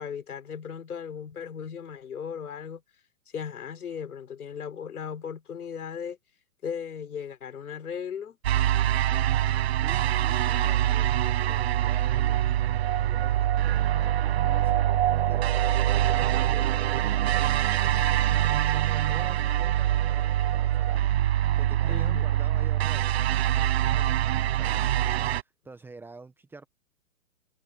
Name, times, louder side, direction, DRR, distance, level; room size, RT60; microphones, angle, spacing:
voice 1, 0.0-2.8 3.3-6.2 6.6-8.4 21.9-22.3, left 7 dB, 85° left, 4.3 m, -37 dB
sound 1, 8.4-25.4, right 12 dB, 45° right, 0.6 m, -24 dB
voice 2, 9.8-12.4 13.1-21.1 21.6-26.7, right 3 dB, 5° right, 1.3 m, -48 dB
hypercardioid pair, 155°, 43 cm